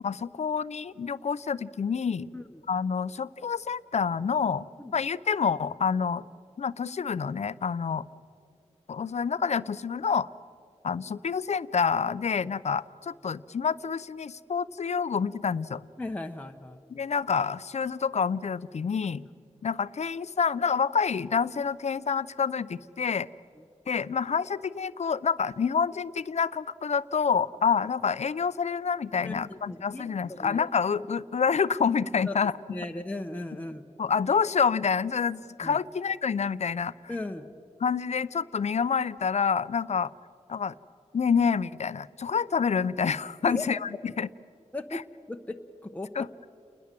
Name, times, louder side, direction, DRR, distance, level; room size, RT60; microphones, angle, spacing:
voice 1, 0.0-2.3 2.7-4.7 4.9-6.2 6.6-8.1 8.9-10.3 10.8-15.8 16.9-19.2 19.6-23.3 23.9-32.5 34.0-36.9 37.8-40.1 40.5-40.7 41.1-44.3 44.9-45.0 46.2-46.3, left 6 dB, 65° left, 16 dB, 0.6 m, -28 dB
voice 2, 2.3-2.6 4.8-4.9 16.0-16.8 29.2-30.6 32.2-32.4 32.7-33.8 35.6-35.8 37.1-37.5 43.4-43.6 44.7-45.0 45.3-45.6 45.8-46.3, left 2 dB, 10° left, 4 dB, 1.0 m, -37 dB
29.5 x 20.5 x 7.6 m, 2.5 s
wide cardioid pair, 110°, 12 cm